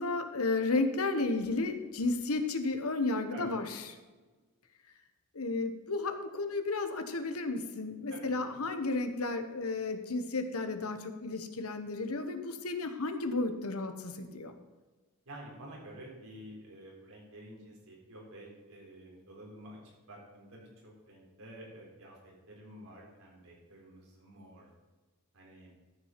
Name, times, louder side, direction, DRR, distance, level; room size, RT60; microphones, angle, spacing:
voice 1, 0.0-3.8 5.3-14.5, left 3 dB, 80° left, 8 dB, 1.2 m, -33 dB
voice 2, 8.1-8.6 15.3-24.7 25.3-25.7, right 1 dB, 75° right, -3 dB, 3.9 m, -50 dB
13.0 x 6.3 x 5.8 m, 1.3 s
head